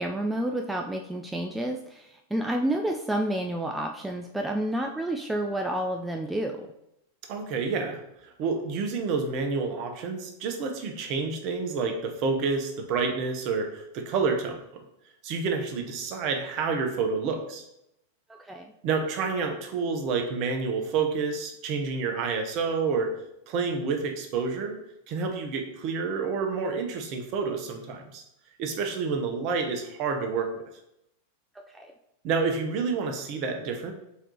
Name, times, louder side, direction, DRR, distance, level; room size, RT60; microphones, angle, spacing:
voice 1, 0.0-6.7 18.4-18.7 31.7-31.9, right 1 dB, 5° right, 2 dB, 0.3 m, -30 dB
voice 2, 7.3-14.6 15.2-17.7 18.8-23.1 23.5-24.7 25.1-28.2 28.6-30.6 32.2-33.9, right 4 dB, 40° right, 4 dB, 0.7 m, -29 dB
4.5 x 3.8 x 2.9 m, 0.82 s
figure-of-eight pair, 90°, 0 cm